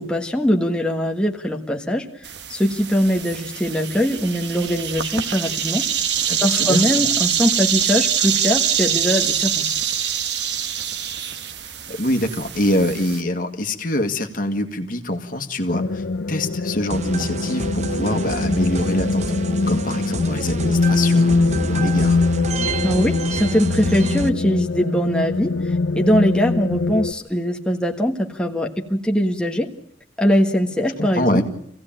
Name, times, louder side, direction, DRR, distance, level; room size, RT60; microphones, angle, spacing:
voice 1, 0.0-2.1 2.5-5.8 6.4-9.8 22.8-29.7 30.2-31.4, equal, 5° left, 0 dB, 1.4 m, -21 dB
sound 1, 2.2-13.2, right 9 dB, 65° right, 1.3 m, -24 dB
voice 2, 6.3-7.0 11.9-19.2 19.7-22.2 31.0-31.4, left 1 dB, 45° left, 6 dB, 1.8 m, -24 dB
sound 2, 15.7-27.1, left 3 dB, 85° left, 0.8 m, -23 dB
sound 3, 16.9-24.3, right 3 dB, 40° right, 0.8 m, -28 dB
25.5 x 16.5 x 8.9 m, 0.76 s
head